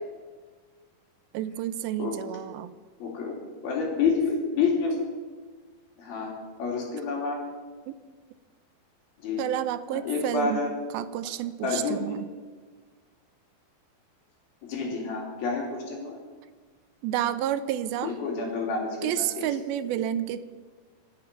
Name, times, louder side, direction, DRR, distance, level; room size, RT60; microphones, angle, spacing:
voice 1, 1.3-2.7 7.9-8.0 9.4-10.6 10.9-12.3 17.0-18.2 19.0-20.5, right 11 dB, 90° right, 13 dB, 2.6 m, -30 dB
voice 2, 3.0-5.0 6.0-6.3 6.6-7.4 9.2-9.4 10.0-10.7 11.6-12.0 14.7-16.2 18.0-18.9 19.2-19.5, left 4 dB, 80° left, 0 dB, 4.9 m, -28 dB
25.5 x 8.9 x 6.0 m, 1.4 s
omnidirectional pair, 4.2 m